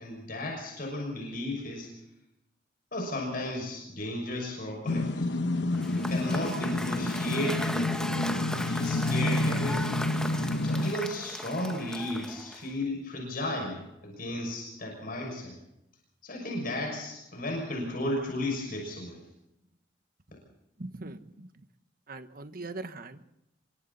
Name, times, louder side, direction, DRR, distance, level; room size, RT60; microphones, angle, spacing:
voice 1, 0.0-1.9 2.9-5.3 5.9-8.5 8.8-9.9 10.6-15.5 16.2-19.3, left 1 dB, 50° left, 1 dB, 6.3 m, -34 dB
sound 1, 4.9-10.9, left 2 dB, 65° left, 1.0 m, -29 dB
Cheering / Applause / Crowd, 5.7-12.8, left 1 dB, 5° left, 1.3 m, -37 dB
voice 2, 20.8-21.6 22.1-23.2, right 2 dB, 50° right, 9 dB, 1.3 m, -41 dB
27.5 x 24.0 x 4.2 m, 0.85 s
head